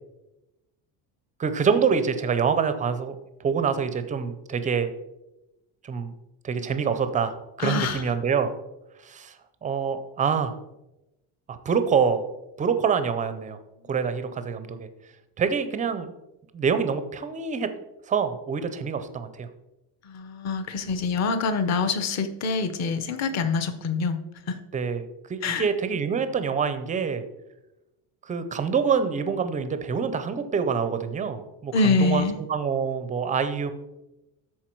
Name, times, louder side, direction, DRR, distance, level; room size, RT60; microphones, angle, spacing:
voice 1, 1.4-3.1 3.4-4.9 5.8-6.1 6.4-8.5 9.0-9.4 9.6-10.5 11.5-12.3 12.6-13.6 13.9-14.9 15.4-16.1 16.5-17.7 18.1-19.5 24.7-27.2 28.2-33.7, right 6 dB, 20° right, 10 dB, 0.4 m, -26 dB
voice 2, 7.6-8.0 14.5-14.8 20.0-24.2 24.5-24.6 25.4-25.7 31.7-32.4, left 4 dB, 35° left, 9 dB, 0.8 m, -25 dB
13.0 x 4.6 x 4.5 m, 0.96 s
cardioid pair, 170°, 44 cm